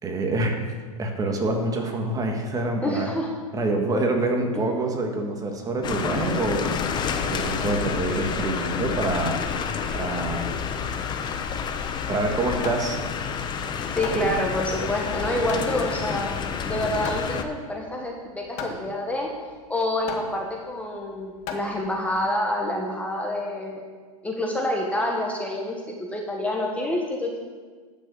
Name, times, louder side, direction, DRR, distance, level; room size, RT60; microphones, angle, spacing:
voice 1, 0.0-0.6 1.0-3.1 3.5-6.7 7.2-9.4 9.9-10.5 11.8-13.0 14.1-14.3, right 2 dB, 20° right, 3 dB, 1.7 m, -26 dB
voice 2, 2.8-3.3 4.5-4.6 13.9-16.3 16.6-19.3 19.7-23.8 24.2-27.4, left 1 dB, 5° left, 0 dB, 1.4 m, -27 dB
sound 1, 5.8-17.4, left 6 dB, 25° left, 0.8 m, -29 dB
Hammer, 12.4-22.3, left 5 dB, 40° left, 1.8 m, -38 dB
12.0 x 6.4 x 7.0 m, 1.5 s
hypercardioid pair, 120°, 19 cm